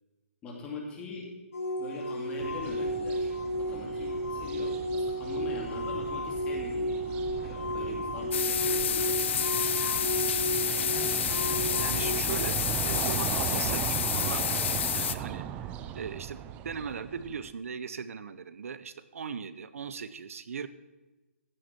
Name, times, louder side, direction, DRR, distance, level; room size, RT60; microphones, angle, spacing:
voice 1, 0.4-1.3 1.8-3.3 3.6-9.6, left 2 dB, 15° left, -1 dB, 2.5 m, -42 dB
sound 1, 1.5-12.1, equal, 85° left, 4.5 m, -33 dB
sound 2, 2.4-17.5, right 10 dB, 15° right, 0.4 m, -38 dB
sound 3, 8.3-15.1, left 8 dB, 55° left, 0.7 m, -29 dB
voice 2, 11.8-14.6 14.9-20.7, right 6 dB, 70° right, 13 dB, 0.7 m, -39 dB
15.0 x 9.0 x 4.4 m, 1.1 s
hypercardioid pair, 160°, 8 cm